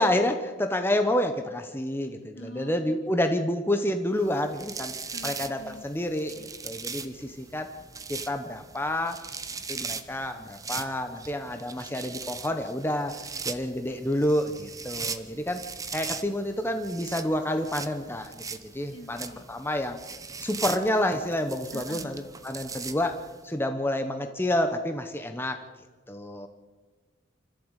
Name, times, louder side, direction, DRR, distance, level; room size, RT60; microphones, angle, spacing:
voice 1, 0.0-4.9 5.2-7.7 8.1-9.2 9.7-15.6 15.9-20.0 20.4-23.2 23.4-25.6 26.1-26.5, left 1 dB, 10° left, 6 dB, 1.0 m, -29 dB
voice 2, 2.3-3.0 5.1-5.9 18.8-19.4 21.7-22.2, left 1 dB, 75° left, 5 dB, 2.5 m, -44 dB
sound 1, 4.2-23.4, right 5 dB, 20° right, 0.9 m, -39 dB
25.5 x 14.0 x 8.2 m, 1.4 s
head